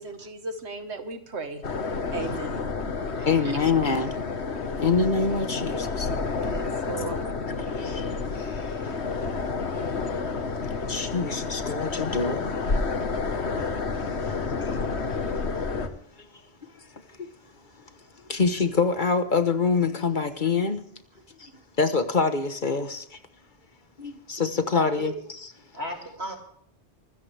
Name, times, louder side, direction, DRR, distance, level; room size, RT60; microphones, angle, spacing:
voice 1, 0.0-1.6 2.1-2.8 3.0-3.5 6.4-7.3, right 3 dB, 90° right, 7 dB, 1.9 m, -37 dB
sound 1, 1.6-15.9, left 4 dB, 80° left, 1.7 m, -30 dB
voice 2, 3.2-4.1 4.6-6.5 7.6-9.4 9.9-12.6 14.1-14.2 14.5-15.2 16.6-16.7 17.1-17.3 18.3-20.8 21.4-23.2 24.0-25.1, left 4 dB, 45° left, 9 dB, 1.3 m, -27 dB
voice 3, 24.7-25.1 25.7-26.4, right 1 dB, 70° right, 2 dB, 3.4 m, -35 dB
24.0 x 14.0 x 3.4 m, 0.67 s
omnidirectional pair, 1.1 m